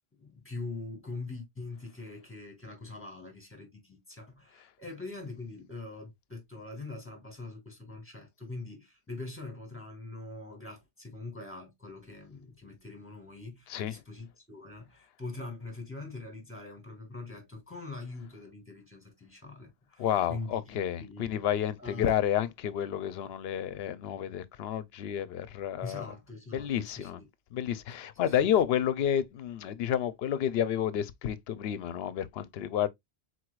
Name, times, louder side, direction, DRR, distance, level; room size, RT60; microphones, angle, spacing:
voice 1, 0.2-21.4 21.8-22.1 25.8-27.3 28.3-28.4, left 3 dB, 10° left, 2.0 m, -43 dB
voice 2, 20.0-26.1 26.5-27.2 27.5-32.9, left 10 dB, 70° left, 0.8 m, -30 dB
4.6 x 4.2 x 2.4 m
omnidirectional pair, 1.1 m